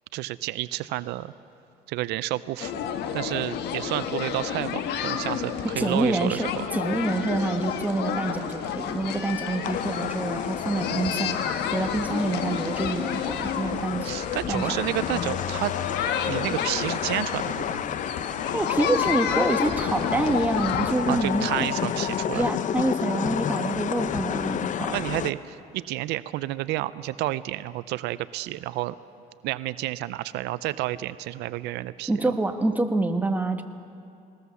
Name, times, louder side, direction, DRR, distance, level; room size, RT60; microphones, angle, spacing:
voice 1, 0.1-1.3 1.9-2.8 3.1-6.6 14.0-15.7 16.2-17.9 21.1-22.4 24.9-28.9 29.4-32.1, right 16 dB, 90° right, 16 dB, 0.5 m, -30 dB
sound 1, 2.6-20.9, left 8 dB, 80° left, 1.4 m, -30 dB
voice 2, 5.8-14.1 14.5-14.8 18.5-21.7 22.3-25.0 32.1-33.6, right 2 dB, 10° right, 6 dB, 1.3 m, -27 dB
sound 2, 9.6-25.3, left 9 dB, 50° left, 0.7 m, -31 dB
20.5 x 19.0 x 7.0 m, 2.5 s
cardioid pair, 110°, 17 cm